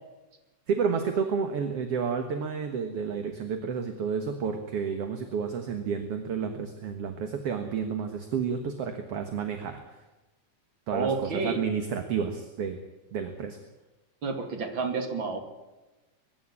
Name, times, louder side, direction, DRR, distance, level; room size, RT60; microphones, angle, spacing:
voice 1, 0.7-9.8 10.9-12.8 13.1-13.6, right 6 dB, 55° right, 6 dB, 2.3 m, -30 dB
voice 2, 10.9-11.6 14.2-15.4, right 4 dB, 40° right, 5 dB, 3.0 m, -30 dB
22.5 x 12.0 x 9.8 m, 1.1 s
omnidirectional pair, 3.5 m